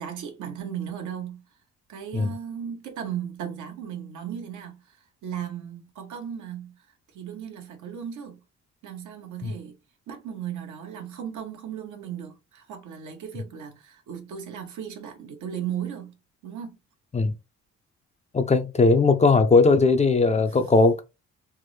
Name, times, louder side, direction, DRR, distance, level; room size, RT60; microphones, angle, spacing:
voice 1, 0.0-1.4 1.9-5.0 5.2-6.8 7.1-8.4 8.8-9.8 10.1-16.1 16.4-16.8 20.5-20.6, right 9 dB, 75° right, 1.0 m, -36 dB
voice 2, 18.3-21.0, left 3 dB, 25° left, 0.4 m, -19 dB
3.4 x 2.0 x 3.1 m
cardioid pair, 90°, 30 cm